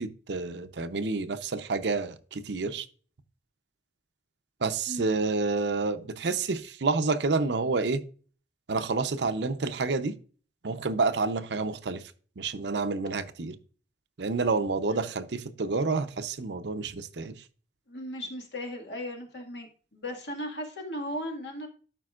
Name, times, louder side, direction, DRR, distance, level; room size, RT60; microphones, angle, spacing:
voice 1, 0.0-2.9 4.6-8.0 8.7-10.2 10.6-12.0 12.4-13.6 14.2-17.3, right 3 dB, 80° right, 0.7 m, -29 dB
voice 2, 17.9-21.7, left 1 dB, 80° left, 1.9 m, -37 dB
12.0 x 5.2 x 2.4 m
head